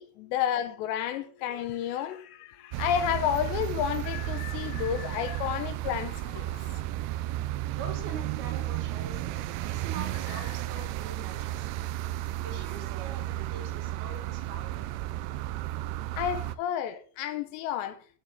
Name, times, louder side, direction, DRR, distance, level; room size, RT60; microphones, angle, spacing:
voice 1, 0.0-6.7 16.2-18.0, left 10 dB, 80° left, 2.9 m, -31 dB
sound 1, 2.7-16.6, right 15 dB, 90° right, 2.3 m, -33 dB
voice 2, 7.8-11.9 12.4-15.1, right 4 dB, 65° right, 3.3 m, -44 dB
15.5 x 7.0 x 3.6 m
omnidirectional pair, 5.3 m